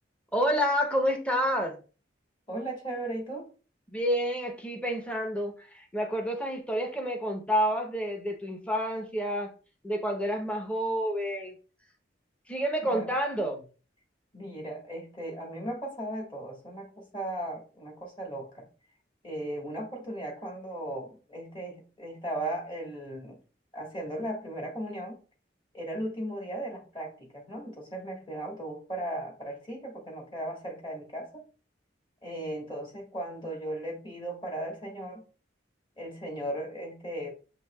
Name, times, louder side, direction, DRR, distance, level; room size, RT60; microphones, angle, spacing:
voice 1, 0.3-1.8 3.9-9.5 9.8-11.5 12.5-13.6, equal, 5° left, 0.7 m, -29 dB
voice 2, 2.5-3.5 12.8-13.1 14.3-18.7 19.2-23.4 23.7-25.2 25.7-31.4 32.2-35.2 36.0-37.3, right 1 dB, 25° left, 1.4 m, -37 dB
6.9 x 2.9 x 2.3 m
head